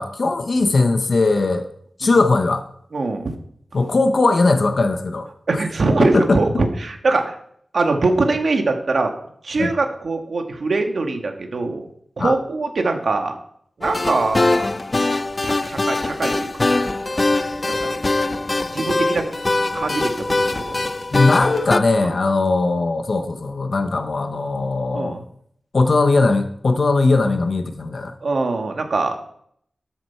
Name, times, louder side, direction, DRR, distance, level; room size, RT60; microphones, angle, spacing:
voice 1, 0.0-1.7 2.0-2.6 3.7-5.6 6.0-6.4 9.6-9.7 12.2-12.3 21.1-25.2 25.7-28.1, left 3 dB, 60° left, 7 dB, 0.9 m, -19 dB
voice 2, 2.9-3.3 5.5-7.4 7.7-9.1 9.4-11.8 12.2-13.4 13.8-14.7 15.4-16.9 17.8-18.0 18.7-19.3 19.7-20.1 20.6-20.8 22.0-22.1 24.9-25.2 28.2-29.2, right 3 dB, 75° right, 4 dB, 1.6 m, -22 dB
sound 1, 13.8-21.8, left 2 dB, 35° left, 0.5 m, -22 dB
13.0 x 7.6 x 4.5 m, 0.67 s
wide cardioid pair, 110°, 0 cm